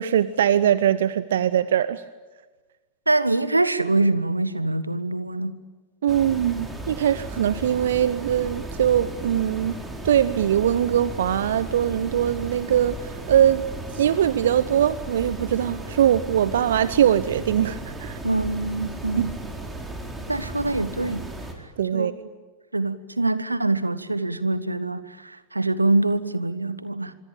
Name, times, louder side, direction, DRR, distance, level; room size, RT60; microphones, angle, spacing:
voice 1, 0.0-2.0 6.0-9.8 10.0-13.6 13.9-18.2 21.8-22.1, right 10 dB, 60° right, 16 dB, 0.8 m, -21 dB
voice 2, 3.1-5.5 18.2-19.4 20.3-21.2 21.9-22.1 22.7-27.1, right 2 dB, 85° right, 15 dB, 1.2 m, -24 dB
sound 1, 6.1-21.5, right 2 dB, 10° right, 4.6 m, -35 dB
26.0 x 24.0 x 8.8 m, 1.3 s
figure-of-eight pair, 90°, 0 cm